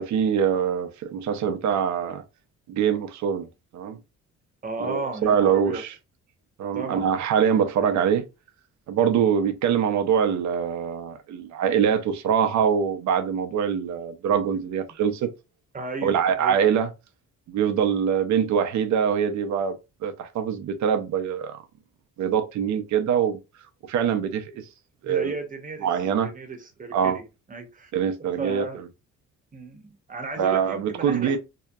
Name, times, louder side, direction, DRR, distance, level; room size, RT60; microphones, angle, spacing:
voice 1, 0.0-2.2 2.7-3.5 3.7-4.0 4.8-5.9 6.6-8.2 8.9-15.3 16.0-16.9 17.5-21.6 22.2-23.4 23.9-24.6 25.0-25.4 25.8-26.3 26.9-27.2 27.9-28.6 30.4-31.4, right 7 dB, 70° right, 0.6 m, -24 dB
voice 2, 4.6-5.8 6.7-7.1 15.7-16.6 25.0-25.9 26.2-27.9 28.4-28.8 29.5-31.4, right 3 dB, 25° right, 0.9 m, -34 dB
2.7 x 2.1 x 2.3 m
cardioid pair, 90°, 30 cm